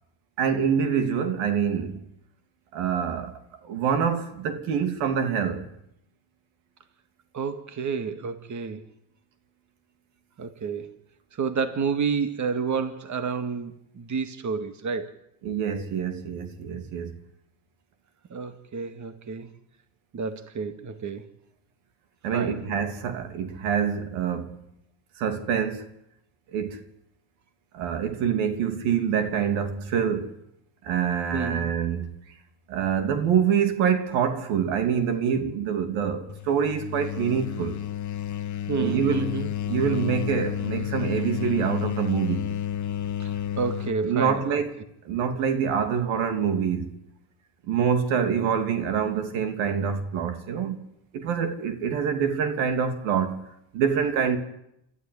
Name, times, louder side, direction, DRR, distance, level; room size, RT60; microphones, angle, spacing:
voice 1, 0.4-2.0 2.7-5.7 15.4-17.2 22.2-24.6 25.2-25.9 26.5-26.8 27.7-30.3 30.8-32.1 32.7-37.8 38.8-39.4 39.7-42.5 44.0-44.7 45.0-46.9 47.7-50.8 51.1-53.5 53.7-54.4, right 7 dB, 80° right, 3.1 m, -26 dB
voice 2, 7.3-8.8 10.4-10.9 11.3-15.1 18.3-19.5 20.1-21.2 22.3-22.6 31.3-31.7 38.7-39.5 43.2-44.6, right 5 dB, 40° right, 2.2 m, -30 dB
sound 1, 36.3-44.0, left 10 dB, 40° left, 1.4 m, -31 dB
27.0 x 13.5 x 9.9 m
supercardioid pair, 85°, 47 cm